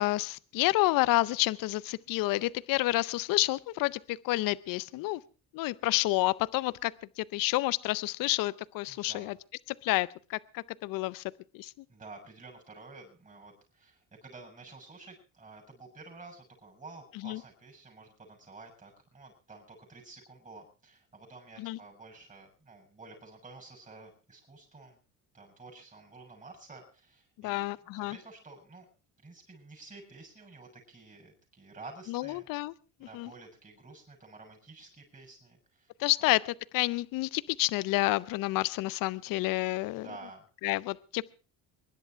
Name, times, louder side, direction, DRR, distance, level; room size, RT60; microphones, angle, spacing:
voice 1, 0.0-5.2 5.5-6.9 7.2-9.4 9.8-11.2 11.5-11.7 17.2-17.4 21.6-21.8 27.4-28.2 32.1-32.7 33.1-33.3 36.0-40.1 40.6-41.2, left 19 dB, 70° left, 19 dB, 0.6 m, -29 dB
voice 2, 8.9-9.4 11.9-25.0 25.3-27.6 27.9-28.9 29.2-32.4 33.0-35.9 36.2-36.3 39.9-40.5, right 3 dB, 20° right, 1 dB, 6.7 m, -51 dB
24.0 x 11.0 x 4.5 m, 0.35 s
cardioid pair, 95°, 34 cm